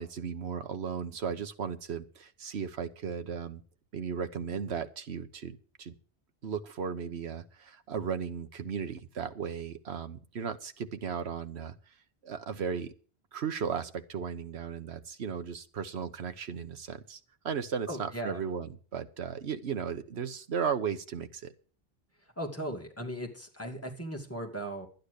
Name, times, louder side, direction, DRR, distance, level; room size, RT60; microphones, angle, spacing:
voice 1, 0.0-3.6 3.9-5.9 6.4-11.7 12.2-12.9 13.3-17.2 17.4-21.5, right 6 dB, 75° right, 10 dB, 1.3 m, -36 dB
voice 2, 17.9-18.4 22.4-24.9, right 1 dB, 15° left, 1 dB, 2.4 m, -37 dB
11.5 x 9.5 x 6.6 m, 0.41 s
omnidirectional pair, 1.1 m